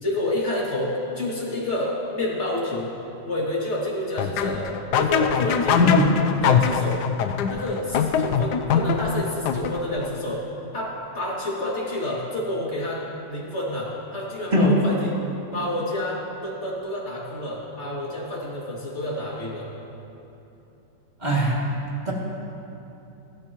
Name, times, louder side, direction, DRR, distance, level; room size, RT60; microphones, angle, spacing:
voice 1, 0.0-2.9 3.2-6.1 6.4-7.0 7.5-10.5 10.7-15.2 15.5-19.7, left 1 dB, 40° left, -5 dB, 2.8 m, -29 dB
sound 1, 4.2-10.1, left 7 dB, 70° left, 1.2 m, -23 dB
voice 2, 5.8-6.1 14.5-14.8 21.2-21.6 22.1-22.2, equal, 25° right, -5 dB, 2.5 m, -19 dB
22.5 x 12.5 x 3.0 m, 2.9 s
omnidirectional pair, 1.9 m